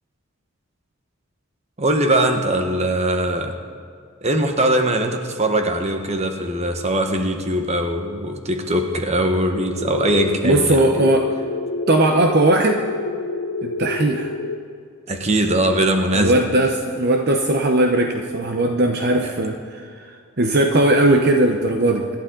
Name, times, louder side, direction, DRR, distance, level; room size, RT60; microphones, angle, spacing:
voice 1, 1.8-3.5 4.2-11.1 15.1-16.4 19.2-19.3, right 1 dB, 30° right, 5 dB, 1.3 m, -21 dB
sound 1, 9.5-14.6, left 3 dB, 90° left, 0.8 m, -28 dB
voice 2, 10.4-11.3 11.9-12.8 13.6-14.3 16.1-20.1 20.4-22.1, right 1 dB, 50° right, 3 dB, 0.9 m, -18 dB
25.5 x 12.0 x 3.9 m, 2.2 s
head